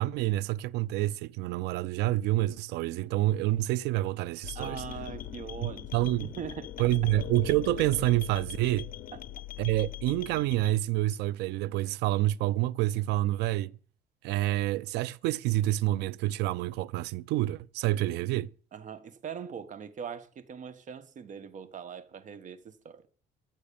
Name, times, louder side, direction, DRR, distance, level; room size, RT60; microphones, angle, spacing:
voice 1, 0.0-4.8 5.6-6.3 6.8-8.9 9.6-13.8 14.2-18.5, right 16 dB, 85° right, 0.5 m, -28 dB
sound 1, 4.4-10.7, left 13 dB, 55° left, 0.7 m, -41 dB
voice 2, 4.5-6.7 7.0-7.1 9.1-9.2 18.7-23.0, right 7 dB, 50° right, 1.3 m, -41 dB
13.5 x 6.3 x 6.9 m
cardioid pair, 110°, 17 cm